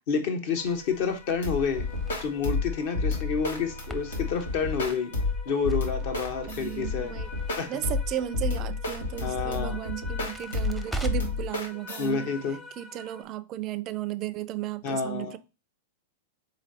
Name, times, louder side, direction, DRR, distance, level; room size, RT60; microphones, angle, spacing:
voice 1, 0.1-1.9 2.2-5.1 5.4-7.1 7.6-7.7 9.2-9.8 12.0-12.6 14.8-15.3, left 5 dB, 55° left, 1.0 m, -29 dB
sound 1, 0.6-13.2, left 4 dB, 25° left, 1.1 m, -48 dB
Crackle, 0.6-11.5, right 3 dB, ahead, 0.6 m, -43 dB
sound 2, 1.4-12.1, left 3 dB, 80° left, 1.3 m, -31 dB
voice 2, 6.5-7.3 7.7-12.3 12.8-15.4, right 12 dB, 40° right, 0.4 m, -34 dB
3.9 x 3.1 x 4.1 m
hypercardioid pair, 105°, 0 cm